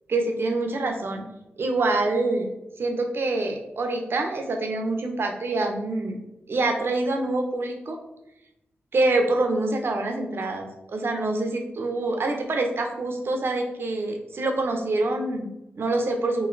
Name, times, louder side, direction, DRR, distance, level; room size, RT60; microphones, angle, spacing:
voice 1, 0.1-1.2 1.6-2.5 2.8-6.2 6.5-8.0 8.9-16.5, right 2 dB, 65° right, 3 dB, 0.7 m, -26 dB
3.1 x 2.7 x 3.9 m, 0.88 s
cardioid pair, 60°, 4 cm